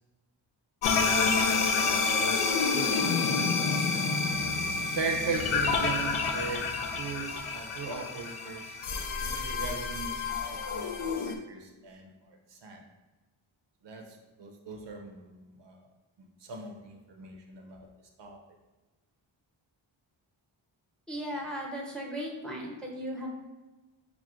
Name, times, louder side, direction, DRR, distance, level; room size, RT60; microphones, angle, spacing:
sound 1, 0.8-11.4, left 4 dB, 85° left, 0.5 m, -28 dB
voice 1, 0.8-2.4 2.7-3.3 4.9-8.8 9.2-12.8 13.8-15.8 16.2-17.9 18.2-18.4, right 4 dB, 60° right, 3 dB, 0.6 m, -39 dB
voice 2, 21.1-23.3, equal, ahead, -1 dB, 0.6 m, -36 dB
5.8 x 2.1 x 2.4 m, 1.2 s
wide cardioid pair, 85°, 48 cm